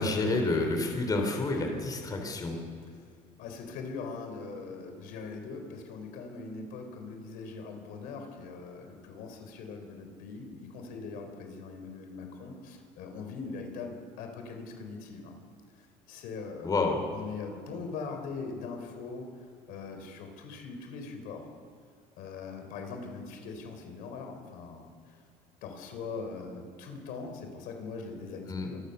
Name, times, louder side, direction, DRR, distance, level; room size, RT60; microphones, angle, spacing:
voice 1, 0.0-2.6 16.6-17.0 28.5-28.7, left 2 dB, 25° left, 3 dB, 3.6 m, -29 dB
voice 2, 3.4-15.4 15.7-16.7 17.1-21.5 22.2-24.9 25.6-28.8, left 4 dB, 75° left, 5 dB, 4.1 m, -41 dB
26.5 x 20.5 x 6.8 m, 2.3 s
cardioid pair, 145°, 15 cm